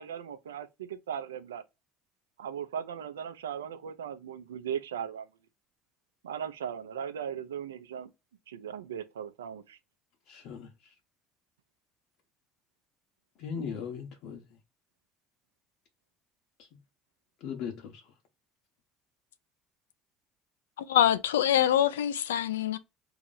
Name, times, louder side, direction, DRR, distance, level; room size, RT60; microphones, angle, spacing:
voice 1, 0.0-1.6 2.4-5.3 6.2-8.1 8.5-9.8, right 8 dB, 85° right, 0.6 m, -38 dB
voice 2, 10.3-10.9 13.4-14.4 17.4-18.0, left 7 dB, 65° left, 1.0 m, -38 dB
voice 3, 20.9-22.8, left 10 dB, 80° left, 0.4 m, -24 dB
3.0 x 2.9 x 3.9 m
hypercardioid pair, 65°, 0 cm